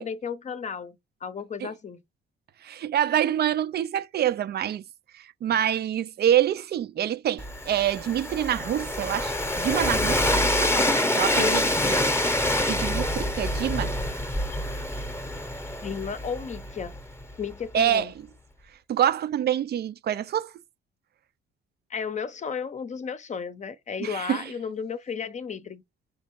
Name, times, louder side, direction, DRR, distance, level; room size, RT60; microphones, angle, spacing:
voice 1, 0.0-2.0 11.3-11.7 15.8-16.9 17.4-18.1 21.9-25.8, left 6 dB, 35° left, 0.6 m, -33 dB
voice 2, 2.6-4.8 5.1-12.0 12.3-13.9 17.7-18.1 18.9-20.5 24.0-24.5, right 10 dB, 55° right, 0.4 m, -26 dB
Train, 7.4-17.2, left 1 dB, 10° left, 0.8 m, -26 dB
5.0 x 3.3 x 3.0 m
cardioid pair, 90°, 20 cm